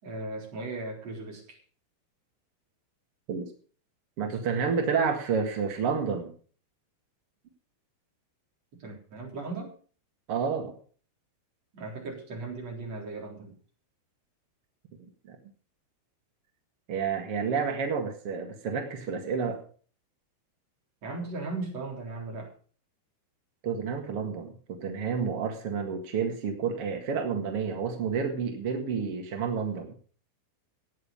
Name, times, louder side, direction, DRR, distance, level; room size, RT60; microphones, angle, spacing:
voice 1, 0.0-1.6 8.8-9.7 11.7-13.5 21.0-22.5, right 3 dB, 35° right, -1 dB, 4.4 m, -37 dB
voice 2, 4.2-6.3 10.3-10.7 15.3-15.4 16.9-19.6 23.6-29.9, right 6 dB, 60° right, 3 dB, 1.5 m, -30 dB
16.5 x 9.0 x 5.2 m, 0.42 s
omnidirectional pair, 5.6 m